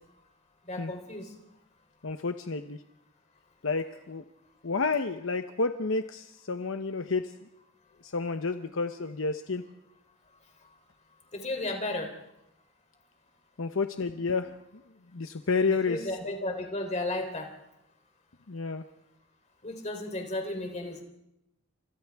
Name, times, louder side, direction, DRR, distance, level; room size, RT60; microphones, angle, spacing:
voice 1, 0.7-1.3 11.3-12.1 15.7-17.5 19.6-21.0, left 2 dB, 30° left, 3 dB, 3.6 m, -34 dB
voice 2, 2.0-2.8 3.6-4.2 4.6-7.3 8.0-9.6 13.6-14.5 15.1-16.1 18.5-18.8, left 4 dB, 65° left, 7 dB, 0.9 m, -30 dB
30.0 x 26.5 x 3.6 m, 0.89 s
head